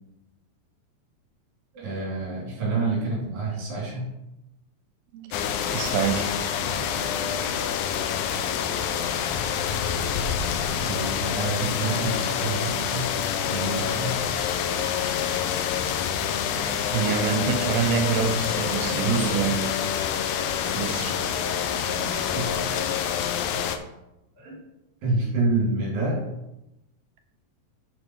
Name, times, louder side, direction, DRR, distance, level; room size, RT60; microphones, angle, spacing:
voice 1, 1.7-4.1 10.8-13.1 13.4-14.3 19.0-19.4 21.9-22.5 24.4-24.6 25.0-26.2, right 3 dB, 70° right, 4.8 m, -28 dB
sound 1, 5.3-23.8, left 8 dB, 90° left, 1.7 m, -27 dB
voice 2, 5.7-6.4 16.6-19.7 20.8-21.2, right 7 dB, 85° right, 2.8 m, -27 dB
10.0 x 4.6 x 4.6 m
omnidirectional pair, 4.3 m